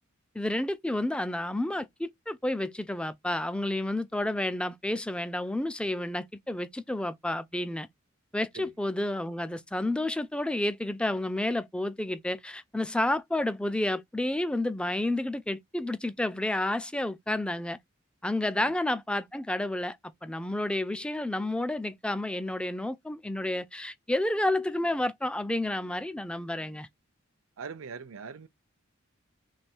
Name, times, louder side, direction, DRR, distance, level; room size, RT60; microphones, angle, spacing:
voice 1, 0.4-7.9 8.3-17.8 18.2-20.0 20.2-26.9, left 1 dB, 5° left, 0.3 m, -30 dB
voice 2, 27.6-28.5, right 5 dB, 80° right, 0.6 m, -41 dB
3.3 x 3.1 x 4.3 m
head